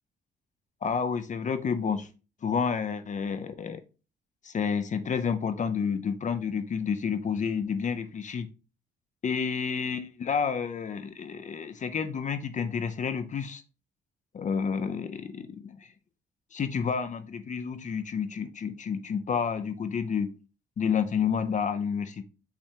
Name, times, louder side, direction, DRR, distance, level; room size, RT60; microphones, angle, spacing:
voice 1, 0.8-2.1 2.4-3.8 4.4-8.5 9.2-13.6 14.3-15.9 16.5-20.3 20.8-22.2, left 6 dB, 40° left, 10 dB, 0.5 m, -30 dB
5.8 x 3.3 x 2.8 m, 0.33 s
cardioid pair, 90°, 20 cm